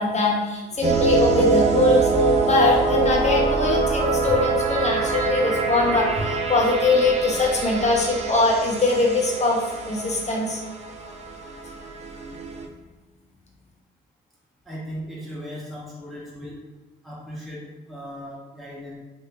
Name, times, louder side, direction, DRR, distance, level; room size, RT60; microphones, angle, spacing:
voice 1, 0.0-10.6, left 2 dB, 35° left, -1 dB, 0.9 m, -22 dB
sound 1, 0.8-12.6, right 3 dB, 35° right, 0.5 m, -24 dB
voice 2, 14.6-16.6 17.0-19.0, equal, ahead, -6 dB, 0.9 m, -37 dB
3.5 x 2.6 x 2.9 m, 1.2 s
cardioid pair, 90°, 20 cm